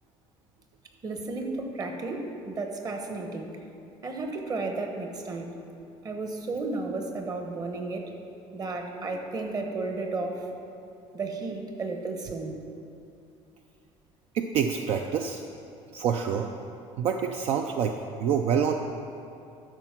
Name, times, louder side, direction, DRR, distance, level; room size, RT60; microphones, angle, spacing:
voice 1, 1.0-3.6 4.0-5.6 6.0-8.1 8.5-10.5 11.1-12.6, right 3 dB, 35° right, 3 dB, 1.1 m, -33 dB
voice 2, 14.3-15.4 15.9-16.5 17.0-18.7, right 7 dB, 65° right, 4 dB, 0.5 m, -27 dB
12.0 x 4.8 x 5.9 m, 2.7 s
cardioid pair, 120°, 11 cm